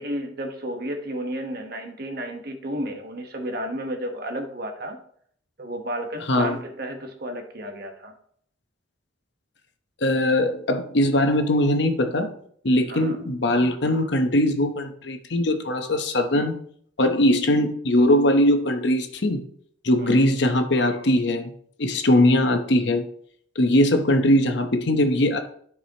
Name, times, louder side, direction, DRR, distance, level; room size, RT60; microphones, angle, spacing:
voice 1, 0.0-5.0 5.6-8.1 12.9-13.2 20.0-20.4, right 1 dB, 50° right, 4 dB, 1.2 m, -32 dB
voice 2, 10.0-12.3 12.6-16.6 17.0-19.4 19.8-21.5 21.8-23.0 23.6-25.4, left 1 dB, 55° left, 6 dB, 0.9 m, -21 dB
14.5 x 4.8 x 2.9 m, 0.62 s
head